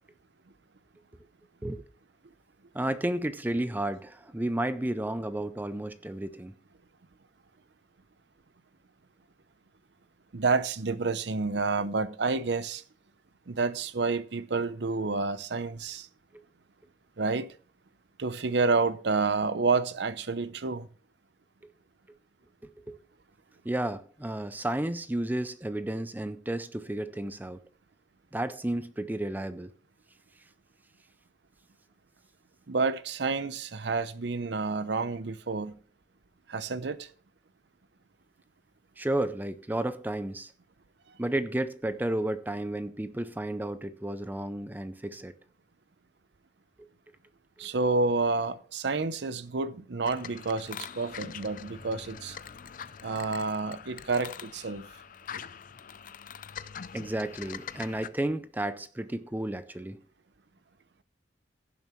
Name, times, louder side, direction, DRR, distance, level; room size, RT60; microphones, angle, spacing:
voice 1, 2.7-6.5 22.6-23.0 23.6-27.6 28.3-29.7 39.0-40.5 41.2-45.3 47.6-47.7 56.9-60.0, right 1 dB, 10° right, 0.4 m, -32 dB
voice 2, 10.3-12.8 13.5-16.1 17.2-17.5 18.2-20.9 32.7-35.8 36.5-37.1 47.6-52.4 53.0-54.9 55.3-55.4, right 4 dB, 65° right, 0.7 m, -29 dB
sound 1, 50.0-58.1, left 7 dB, 45° left, 0.5 m, -43 dB
16.0 x 7.2 x 3.1 m
head